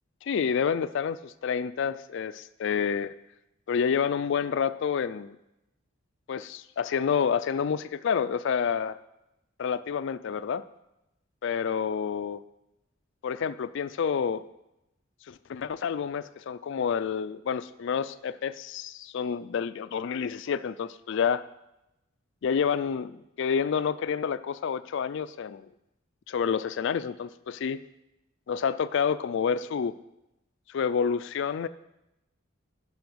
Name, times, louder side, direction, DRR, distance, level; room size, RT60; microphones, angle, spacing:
voice 1, 0.2-3.1 3.7-5.4 6.3-9.0 9.6-10.6 11.4-12.4 13.2-14.4 15.3-21.4 22.4-25.7 26.3-27.8 28.5-29.9 30.7-31.7, left 7 dB, 65° left, 14 dB, 0.4 m, -29 dB
10.5 x 5.7 x 6.2 m, 0.89 s
head